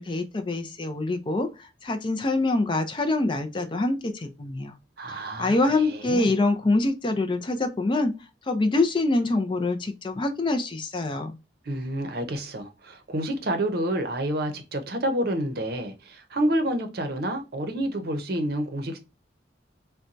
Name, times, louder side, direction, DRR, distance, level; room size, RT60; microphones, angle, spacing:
voice 1, 0.0-4.7 5.1-8.1 8.5-11.4, left 2 dB, 25° left, 0.4 m, -25 dB
voice 2, 5.0-6.3 11.6-19.0, right 1 dB, 55° right, 0.7 m, -29 dB
4.1 x 2.2 x 2.5 m
head